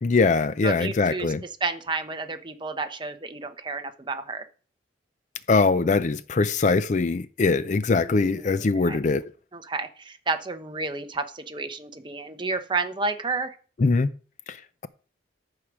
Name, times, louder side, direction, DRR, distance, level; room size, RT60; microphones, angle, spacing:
voice 1, 0.0-1.4 5.5-9.2 13.8-14.1 14.5-14.6, left 3 dB, 40° left, 0.4 m, -22 dB
voice 2, 0.6-4.5 8.0-9.0 9.5-13.6, right 3 dB, 25° right, 0.9 m, -31 dB
14.5 x 4.8 x 6.1 m
head